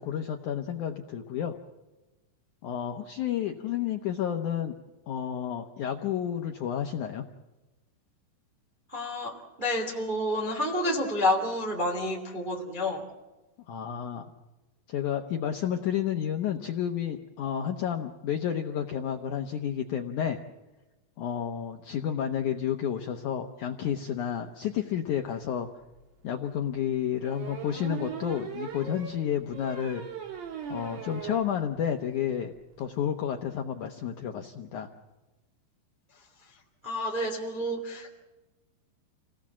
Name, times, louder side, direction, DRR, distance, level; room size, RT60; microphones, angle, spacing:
voice 1, 0.0-1.6 2.6-4.7 5.1-7.2 13.7-14.3 14.9-20.4 21.2-25.7 26.2-30.0 30.7-32.5 32.8-34.9, left 9 dB, 85° left, 4 dB, 1.7 m, -31 dB
voice 2, 8.9-13.0 36.8-38.2, left 1 dB, 15° right, -1 dB, 2.5 m, -29 dB
sound 1, 25.9-26.0 27.2-31.5 31.9-32.0 32.3-32.4 32.5-32.8, right 6 dB, 55° right, 3.6 m, -39 dB
29.0 x 18.0 x 7.4 m, 1.1 s
omnidirectional pair, 5.1 m